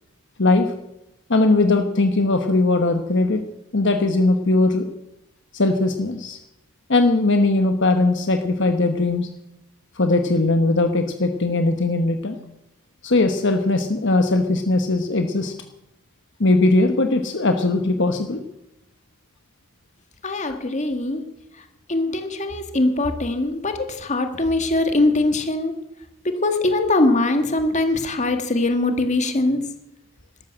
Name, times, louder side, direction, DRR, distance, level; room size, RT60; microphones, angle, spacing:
voice 1, 1.3-3.4 3.7-4.8 5.5-6.4 6.9-9.3 10.0-12.4 13.0-15.5 16.4-18.4, left 2 dB, 60° left, 6 dB, 1.2 m, -19 dB
voice 2, 20.2-21.2 21.9-25.8 26.2-29.6, left 2 dB, 35° left, 7 dB, 1.9 m, -22 dB
13.0 x 12.0 x 7.7 m, 0.89 s
head